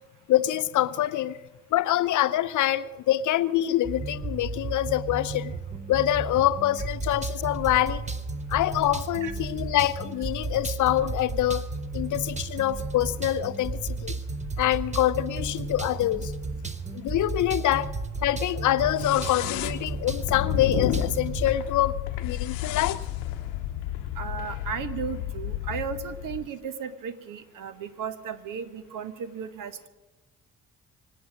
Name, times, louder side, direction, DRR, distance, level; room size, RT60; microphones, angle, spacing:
voice 1, 0.3-1.4 1.7-5.5 5.9-8.1 8.5-11.6 11.9-14.2 14.6-16.3 16.9-17.9 18.2-23.0, left 13 dB, 50° left, 15 dB, 0.7 m, -25 dB
sound 1, 3.8-21.6, right 3 dB, 20° right, 1.2 m, -33 dB
sound 2, 19.0-26.5, left 12 dB, 75° left, 0.9 m, -32 dB
voice 2, 24.2-29.9, right 7 dB, 55° right, 12 dB, 1.2 m, -35 dB
25.0 x 9.1 x 6.2 m, 1.1 s
figure-of-eight pair, 45°, 38 cm